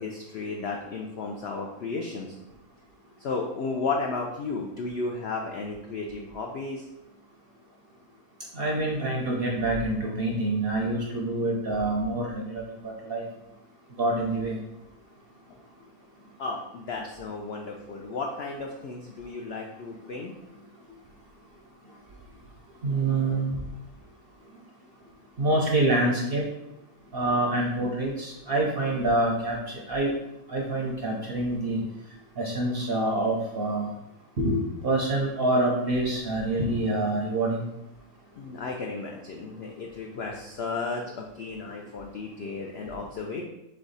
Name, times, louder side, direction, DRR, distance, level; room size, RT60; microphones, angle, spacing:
voice 1, 0.0-2.3 3.2-6.8 16.4-20.3 38.3-43.4, left 3 dB, 90° left, 1 dB, 0.5 m, -33 dB
voice 2, 8.5-13.3 14.0-14.6 22.8-23.6 25.4-26.4 27.1-29.6 29.9-30.1 30.5-31.8 32.4-33.9 34.4-37.6, right 2 dB, 60° right, -1 dB, 0.6 m, -26 dB
3.6 x 3.4 x 4.0 m, 0.89 s
omnidirectional pair, 1.6 m